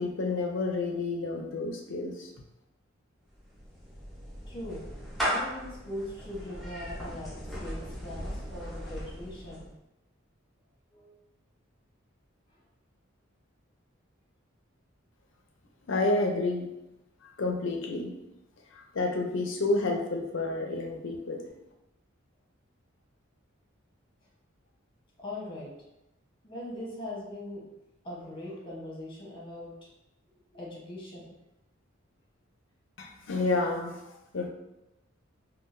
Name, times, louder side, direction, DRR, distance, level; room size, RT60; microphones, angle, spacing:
voice 1, 0.0-2.3 15.8-16.7 17.2-18.1 18.7-21.4 33.0-34.5, left 2 dB, 65° left, 2 dB, 0.5 m, -30 dB
Clapping / Meow, 3.3-9.7, equal, ahead, 0.6 m, -37 dB
voice 2, 4.5-4.8 5.2-9.7 10.9-11.1 25.2-25.7 26.4-27.6 28.0-29.7 30.5-31.3, left 1 dB, 25° left, -5 dB, 1.0 m, -40 dB
3.7 x 2.3 x 2.6 m, 0.92 s
head